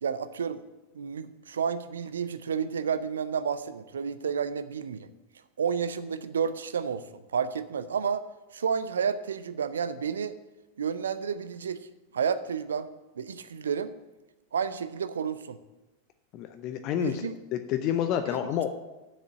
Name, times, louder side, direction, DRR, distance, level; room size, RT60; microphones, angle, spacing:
voice 1, 0.0-0.6 0.9-5.1 5.6-8.2 8.5-10.4 10.8-11.8 12.1-12.9 13.2-13.9 14.5-15.6 16.9-17.3 18.3-18.4, right 6 dB, 65° right, 13 dB, 0.6 m, -31 dB
voice 2, 16.3-17.3 17.7-18.7, left 10 dB, 40° left, 8 dB, 0.6 m, -28 dB
7.5 x 6.7 x 8.1 m, 1.1 s
figure-of-eight pair, 90°, 0 cm